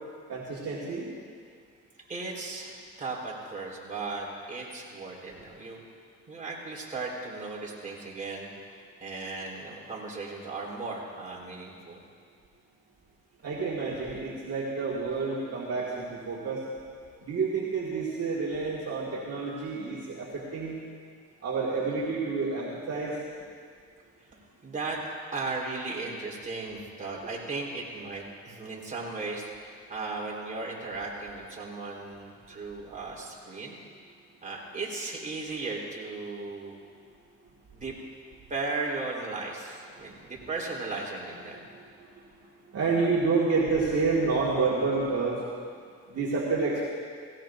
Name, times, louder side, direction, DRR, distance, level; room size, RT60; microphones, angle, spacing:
voice 1, 0.3-1.1 13.4-16.6 17.2-20.8 21.4-23.2 41.5-42.2 42.7-45.5 46.1-46.8, right 4 dB, 55° right, -5 dB, 2.0 m, -29 dB
voice 2, 2.0-5.8 6.3-12.0 19.5-19.6 24.2-25.0 25.3-29.5 29.9-33.8 34.4-36.7 37.7-38.0 38.5-41.6, right 3 dB, 25° right, -4 dB, 3.8 m, -36 dB
17.5 x 17.5 x 2.6 m, 2.1 s
cardioid pair, 90°, 30 cm